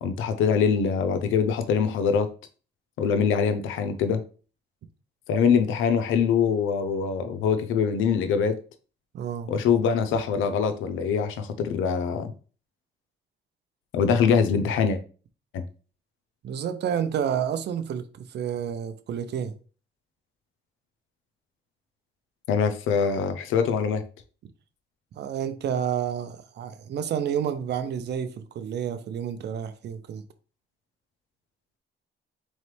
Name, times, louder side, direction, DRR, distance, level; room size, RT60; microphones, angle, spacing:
voice 1, 0.0-2.3 3.0-4.2 5.3-8.6 9.5-12.3 13.9-15.0 15.5-15.6 22.5-24.0, left 6 dB, 85° left, 0.6 m, -23 dB
voice 2, 9.1-9.5 16.4-19.5 25.2-30.2, right 8 dB, 60° right, 0.6 m, -30 dB
4.0 x 3.2 x 3.2 m
cardioid pair, 90°, 20 cm